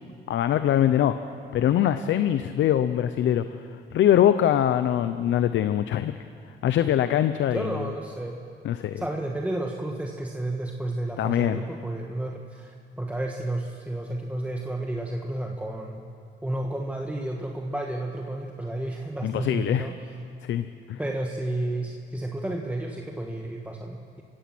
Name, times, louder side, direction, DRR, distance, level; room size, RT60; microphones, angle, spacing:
voice 1, 0.3-1.2 1.5-3.5 3.9-6.2 6.6-7.9 8.6-9.0 11.2-11.6 19.2-19.9 20.4-21.0, left 11 dB, 70° left, 11 dB, 0.7 m, -23 dB
voice 2, 7.5-8.4 8.9-16.0 16.4-19.9 21.0-24.2, right 1 dB, 5° right, 1 dB, 1.5 m, -31 dB
26.5 x 16.0 x 6.2 m, 2.4 s
cardioid pair, 90°, 20 cm